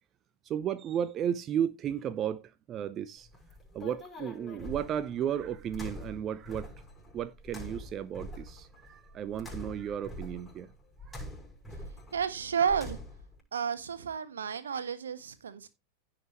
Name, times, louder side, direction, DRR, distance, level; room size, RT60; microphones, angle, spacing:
voice 1, 0.4-3.3 3.7-6.7 7.1-10.7 11.1-11.2, right 9 dB, 30° right, 0.7 m, -34 dB
sound 1, 3.2-13.4, equal, 10° left, 6.0 m, -45 dB
voice 2, 12.1-13.0 13.5-15.7, right 7 dB, 70° right, 1.3 m, -31 dB
16.0 x 5.9 x 3.1 m
figure-of-eight pair, 90°, 0 cm